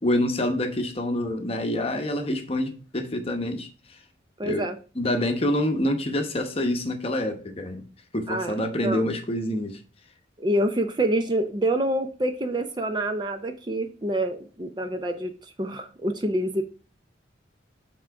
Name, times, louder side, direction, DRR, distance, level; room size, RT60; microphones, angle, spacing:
voice 1, 0.0-3.7 4.4-4.7 5.0-7.9 8.1-9.8, left 1 dB, 30° left, 0.9 m, -26 dB
voice 2, 4.4-4.8 8.3-9.0 10.4-15.3 15.6-16.6, right 1 dB, 25° right, 0.6 m, -27 dB
7.2 x 3.7 x 4.6 m
head